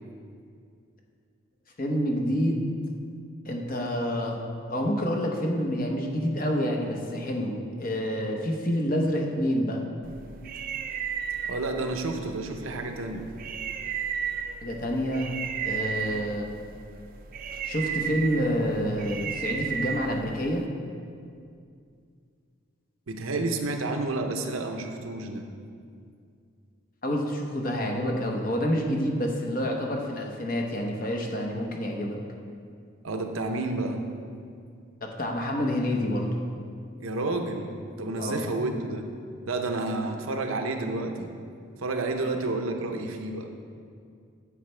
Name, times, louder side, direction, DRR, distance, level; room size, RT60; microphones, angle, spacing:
voice 1, 1.8-2.7 3.4-4.4 4.7-9.8 14.6-15.4 15.6-16.5 17.6-20.7 27.0-32.2 35.0-36.3 38.2-38.4 42.2-42.3, equal, 45° left, 1 dB, 0.9 m, -28 dB
sound 1, 10.0-20.7, right 7 dB, 45° right, 0.4 m, -34 dB
voice 2, 11.4-13.3 23.1-25.4 33.0-34.0 37.0-39.1 39.5-41.3 41.8-43.5, right 2 dB, 90° right, 5 dB, 0.8 m, -30 dB
9.7 x 8.0 x 3.3 m, 2.3 s
head